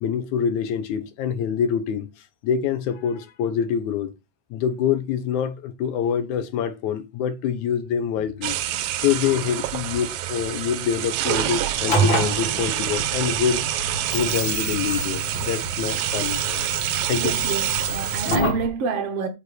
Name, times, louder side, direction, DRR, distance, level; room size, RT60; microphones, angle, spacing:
voice 1, 0.0-2.1 2.4-4.1 4.5-8.6 9.0-13.6 14.1-16.6 17.1-17.4, left 8 dB, 85° left, 2.5 m, -25 dB
sound 1, 8.4-18.4, right 13 dB, 80° right, 2.0 m, -27 dB
sound 2, 11.7-18.7, right 1 dB, 45° left, 2.5 m, -27 dB
voice 2, 17.2-19.3, right 6 dB, 60° right, 2.0 m, -28 dB
8.1 x 4.5 x 6.6 m
omnidirectional pair, 3.3 m